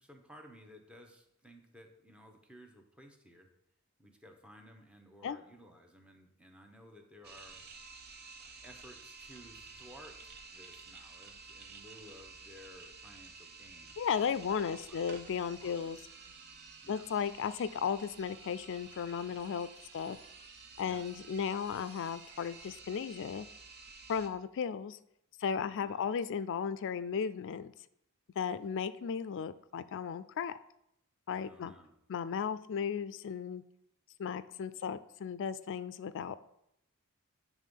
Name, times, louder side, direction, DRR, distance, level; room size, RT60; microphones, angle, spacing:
voice 1, 0.0-3.5 4.0-8.0 8.6-15.9 16.8-17.0 20.8-21.0 25.6-26.1 31.4-31.9, equal, 5° right, 3 dB, 0.9 m, -56 dB
sound 1, 7.2-24.3, right 4 dB, 50° right, 0.9 m, -52 dB
voice 2, 14.0-16.0 16.9-20.2 20.8-23.5 24.1-25.0 25.4-27.7 28.4-30.5 31.3-31.7 32.1-33.6 34.2-36.4, left 7 dB, 60° left, 15 dB, 0.4 m, -35 dB
9.3 x 3.6 x 5.3 m, 0.77 s
head